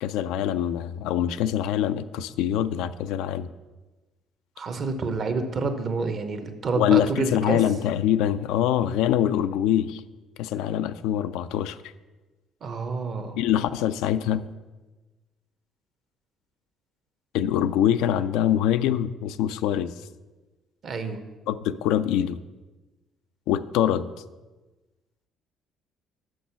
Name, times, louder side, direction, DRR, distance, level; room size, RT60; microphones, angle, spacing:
voice 1, 0.0-3.5 6.7-10.0 10.4-11.8 13.4-14.4 17.3-19.9 21.5-22.4 23.5-24.1, left 11 dB, 85° left, 12 dB, 0.3 m, -24 dB
voice 2, 4.6-7.6 12.6-13.4 20.8-21.2, right 4 dB, 50° right, 8 dB, 0.9 m, -28 dB
6.3 x 6.0 x 5.7 m, 1.2 s
supercardioid pair, 85°, 0 cm